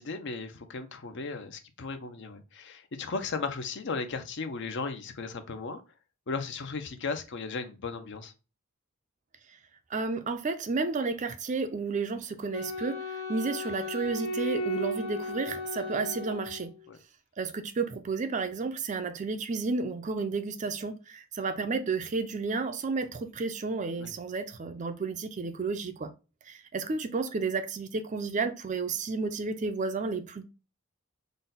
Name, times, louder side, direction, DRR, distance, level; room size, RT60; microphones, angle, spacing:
voice 1, 0.0-5.8 6.3-8.3 16.9-17.0 24.0-24.1, left 4 dB, 55° left, 0.6 m, -36 dB
voice 2, 9.9-16.7 17.4-26.1 26.4-30.4, right 4 dB, 35° right, 0.4 m, -32 dB
Wind instrument woodwind instrument, 12.5-17.0, left 1 dB, 85° left, 1.3 m, -35 dB
3.9 x 2.2 x 3.9 m
head